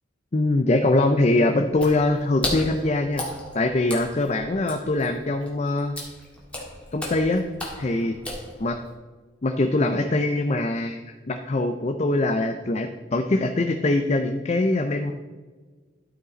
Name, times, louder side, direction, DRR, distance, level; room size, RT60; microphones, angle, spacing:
voice 1, 0.3-3.2 3.5-6.0 6.9-7.5 7.8-8.2 8.6-8.8 9.4-15.1, left 2 dB, 35° left, 6 dB, 0.5 m, -23 dB
Water / Splash splatter, 1.7-8.9, left 1 dB, 5° left, 2.0 m, -35 dB
13.0 x 5.1 x 4.0 m, 1.4 s
head